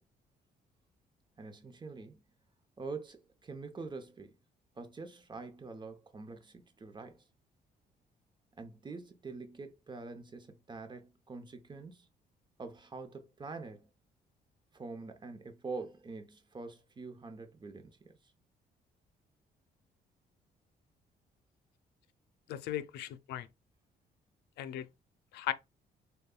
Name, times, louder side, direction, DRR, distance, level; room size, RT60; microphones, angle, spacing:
voice 1, 1.4-2.2 2.8-4.3 4.8-7.2 8.6-12.1 12.6-13.9 14.7-18.2, right 4 dB, 30° right, 0.8 m, -45 dB
voice 2, 22.5-23.5 24.6-24.9 25.3-25.5, left 12 dB, 85° left, 0.5 m, -37 dB
6.5 x 2.3 x 2.2 m
cardioid pair, 95°, 17 cm